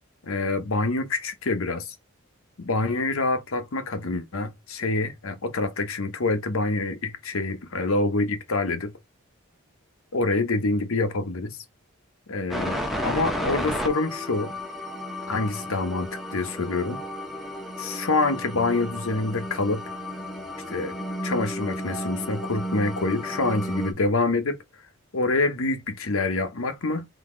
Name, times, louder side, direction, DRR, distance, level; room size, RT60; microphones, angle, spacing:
voice 1, 0.2-1.9 2.6-8.9 10.1-11.6 12.3-14.5 15.3-17.0 17.8-19.8 20.7-20.9 21.2-24.6 25.1-27.1, left 3 dB, 70° left, 0.8 m, -26 dB
sound 1, 12.5-23.9, equal, ahead, 0.7 m, -32 dB
4.0 x 2.7 x 3.7 m
head